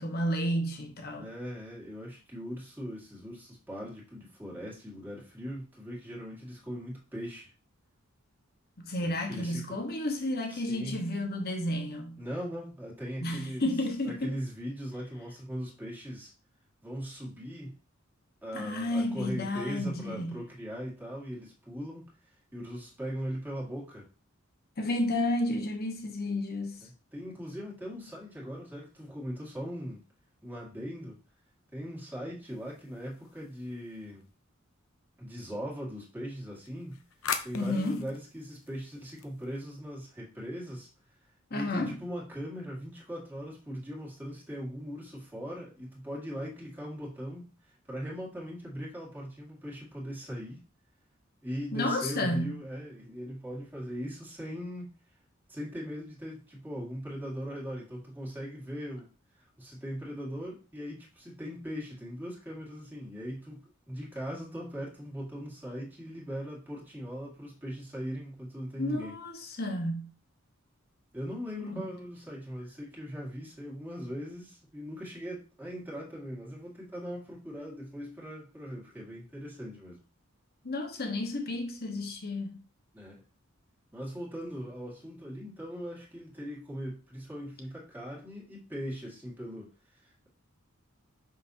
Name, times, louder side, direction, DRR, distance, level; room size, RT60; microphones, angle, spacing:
voice 1, 0.0-1.3 8.8-12.2 13.2-14.3 18.5-20.4 24.8-26.8 37.5-38.0 41.5-42.0 51.7-52.5 68.8-70.1 71.6-71.9 80.6-82.6, left 1 dB, 50° left, 1.2 m, -31 dB
voice 2, 1.2-7.5 9.0-9.8 10.5-11.0 12.2-13.7 14.0-16.3 16.8-17.8 18.4-22.1 22.5-24.1 26.8-30.0 30.4-31.2 31.7-34.2 35.2-37.0 37.4-40.9 41.5-50.6 51.4-54.9 55.5-59.1 59.3-69.2 71.1-80.0 82.9-83.2 83.9-90.3, equal, 10° right, 2.0 m, -40 dB
sound 1, 32.5-34.2 36.5-39.8, left 7 dB, 75° left, 0.7 m, -41 dB
6.1 x 5.6 x 2.8 m
head